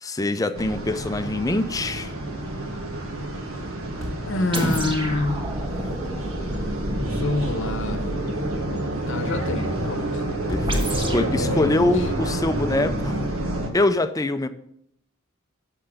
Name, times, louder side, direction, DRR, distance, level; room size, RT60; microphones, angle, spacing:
voice 1, 0.0-2.1 10.5-13.2 13.7-14.5, left 2 dB, 15° left, 0.5 m, -24 dB
sound 1, 0.6-13.7, right 1 dB, 75° right, 1.5 m, -29 dB
sound 2, 4.0-4.4 5.3-6.3 10.5-10.9 11.4-12.2, equal, ahead, 2.0 m, -37 dB
voice 2, 4.2-5.5 6.9-8.0 9.1-10.3 11.4-12.1, left 2 dB, 65° left, 0.9 m, -27 dB
sound 3, 4.5-8.8 10.7-11.4, right 1 dB, 25° right, 1.3 m, -30 dB
6.7 x 5.9 x 6.6 m
head